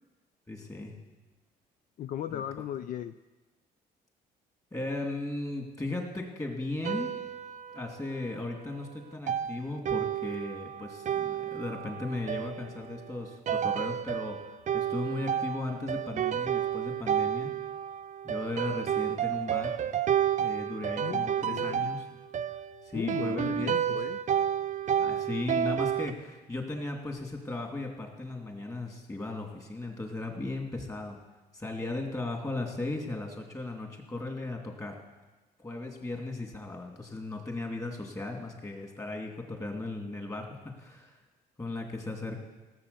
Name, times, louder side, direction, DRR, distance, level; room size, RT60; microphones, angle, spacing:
voice 1, 0.5-1.0 2.3-2.6 4.7-7.1 7.7-14.4 14.7-17.5 18.2-19.8 20.4-22.0 22.8-23.7 25.0-31.2 31.5-35.0 35.6-41.2 41.6-42.4, left 2 dB, 20° left, 2 dB, 2.8 m, -36 dB
voice 2, 2.0-3.2 21.0-21.9 22.9-24.2, left 10 dB, 50° left, 12 dB, 0.5 m, -37 dB
sound 1, 6.8-8.4 9.3-26.1, right 9 dB, 45° right, 0.6 m, -31 dB
17.0 x 7.6 x 7.1 m, 1.2 s
cardioid pair, 110°, 17 cm